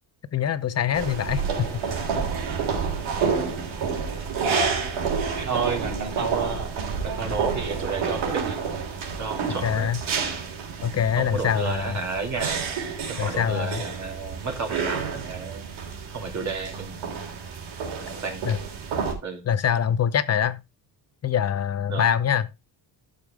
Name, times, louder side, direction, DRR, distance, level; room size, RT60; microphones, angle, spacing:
voice 1, 0.3-1.8 9.6-10.0 10.8-12.0 13.2-13.8 18.4-18.6 19.4-20.6 21.2-22.5, left 8 dB, 35° left, 0.7 m, -24 dB
sound 1, 0.9-19.1, right 5 dB, 80° right, 3.6 m, -29 dB
voice 2, 4.5-4.8 5.4-6.7 7.0-8.6 9.2-9.9 11.2-12.6 13.1-15.6 16.1-16.9 18.1-18.5 19.2-19.4 21.9-22.1, right 4 dB, 35° right, 2.6 m, -31 dB
12.0 x 6.8 x 3.5 m
cardioid pair, 155°, 47 cm